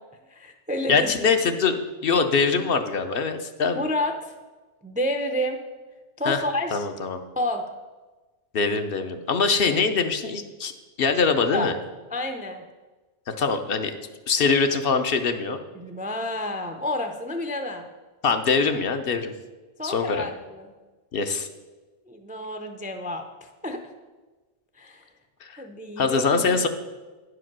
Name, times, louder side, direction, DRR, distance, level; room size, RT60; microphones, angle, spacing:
voice 1, 0.3-1.1 3.7-4.3 4.8-5.6 6.2-6.9 7.4-7.6 11.5-11.7 12.1-12.6 15.7-17.9 19.8-20.7 22.1-23.8 24.8-25.1 25.6-26.6, left 1 dB, 10° right, 5 dB, 0.3 m, -30 dB
voice 2, 0.9-3.8 6.3-6.4 6.7-7.2 8.5-10.7 11.0-11.7 13.3-14.0 14.3-15.6 18.2-19.3 19.8-20.3 21.1-21.5 25.4-25.6 26.0-26.7, left 5 dB, 60° left, 7 dB, 0.8 m, -23 dB
9.9 x 4.9 x 6.0 m, 1.3 s
omnidirectional pair, 1.1 m